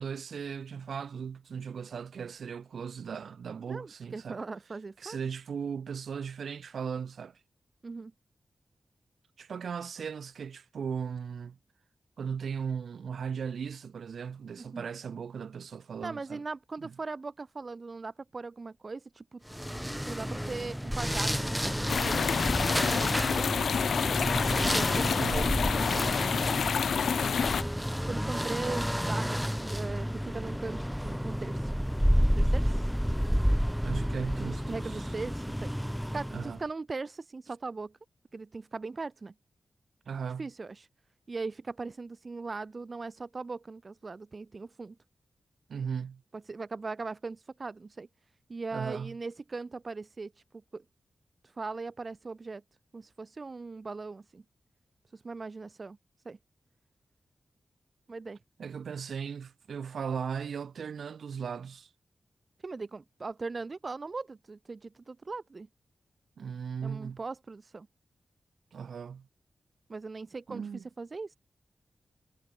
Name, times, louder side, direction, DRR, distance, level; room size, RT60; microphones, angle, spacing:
voice 1, 0.0-4.4 5.0-7.4 9.4-11.6 12.2-16.4 16.8-16.9 25.1-25.6 33.8-35.1 36.3-36.6 40.1-40.5 45.7-46.2 48.7-49.1 58.6-61.9 66.4-67.2 68.7-69.3 70.5-70.8, right 6 dB, 85° right, 4.4 m, -37 dB
voice 2, 3.7-5.2 7.8-8.1 14.6-14.8 16.0-19.4 20.1-21.4 22.0-23.7 24.7-26.1 28.1-31.7 32.3-32.8 34.5-35.7 36.1-37.9 38.3-39.3 40.4-40.9 41.3-45.0 46.3-48.1 48.5-50.3 50.7-50.8 51.6-52.6 52.9-54.4 55.1-56.0 56.2-56.4 58.1-58.4 62.6-65.7 66.8-67.9 69.9-71.4, right 3 dB, 45° right, 4.9 m, -39 dB
sound 1, 19.5-36.6, equal, ahead, 1.8 m, -30 dB
sound 2, 21.9-27.6, left 7 dB, 85° left, 1.2 m, -28 dB
wide cardioid pair, 80°, 0 cm